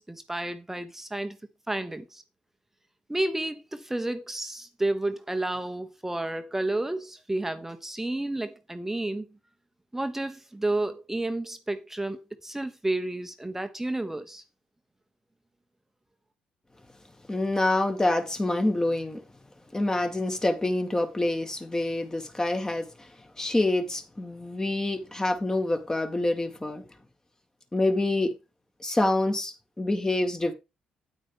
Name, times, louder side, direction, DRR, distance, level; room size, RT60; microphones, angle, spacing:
voice 1, 0.0-1.4 1.7-2.2 3.1-9.3 9.9-14.4, right 2 dB, 10° right, 1.1 m, -31 dB
voice 2, 17.3-19.2 19.7-23.1 23.4-26.8 27.7-28.3 28.8-30.5, left 2 dB, 20° left, 2.1 m, -26 dB
9.3 x 8.9 x 3.6 m
hypercardioid pair, 45°, 3 cm